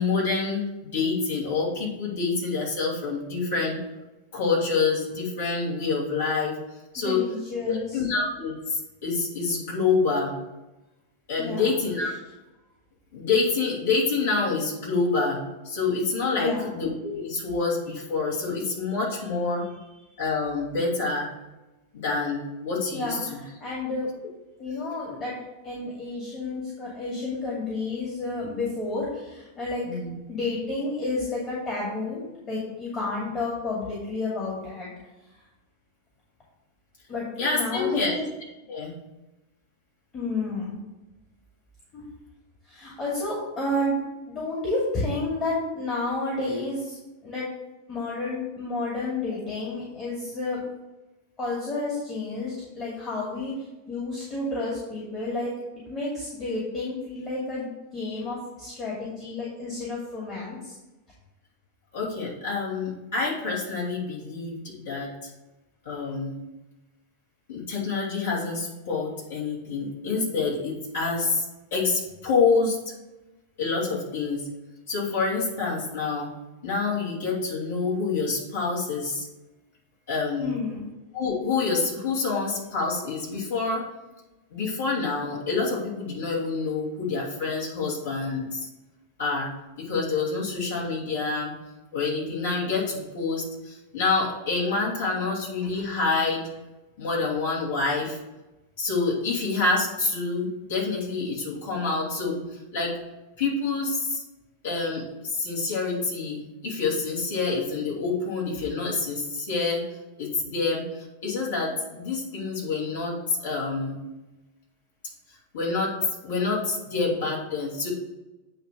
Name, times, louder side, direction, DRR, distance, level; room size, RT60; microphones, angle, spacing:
voice 1, 0.0-3.8 4.3-6.6 6.9-7.2 7.6-10.3 11.3-12.1 13.1-19.6 20.2-21.3 21.9-23.4 29.8-30.1 37.4-38.2 38.7-38.9 61.9-65.3 65.8-66.3 67.5-71.5 71.7-72.8 73.6-74.4 74.9-76.3 76.6-79.3 80.1-80.5 81.1-83.8 84.5-88.7 89.2-89.5 89.8-91.5 91.9-96.5 97.0-98.2 98.8-103.0 103.4-104.2 104.6-109.8 110.2-113.9 115.5-116.0 116.2-117.9, left 4 dB, 60° left, -5 dB, 2.7 m, -27 dB
voice 2, 7.0-8.0 11.4-11.7 16.3-16.7 22.9-24.1 24.6-25.4 25.6-29.9 30.3-34.9 37.1-37.3 37.5-38.2 40.1-40.8 41.9-42.0 42.6-47.0 47.2-47.5 47.9-50.6 51.4-55.5 55.9-57.7 57.9-60.7 80.4-80.9, left 2 dB, 25° left, -5 dB, 2.3 m, -31 dB
8.7 x 3.1 x 6.4 m, 1.0 s
figure-of-eight pair, 90°, 0 cm